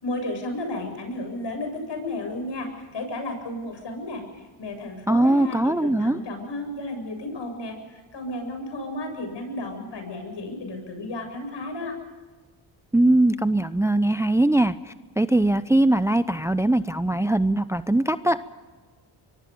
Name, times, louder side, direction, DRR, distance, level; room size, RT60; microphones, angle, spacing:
voice 1, 0.0-11.9, left 2 dB, 60° left, 5 dB, 7.7 m, -33 dB
voice 2, 5.1-6.2 12.9-18.5, right 1 dB, 5° right, 13 dB, 0.6 m, -21 dB
24.0 x 23.0 x 5.4 m, 1.4 s
cardioid pair, 70°, 49 cm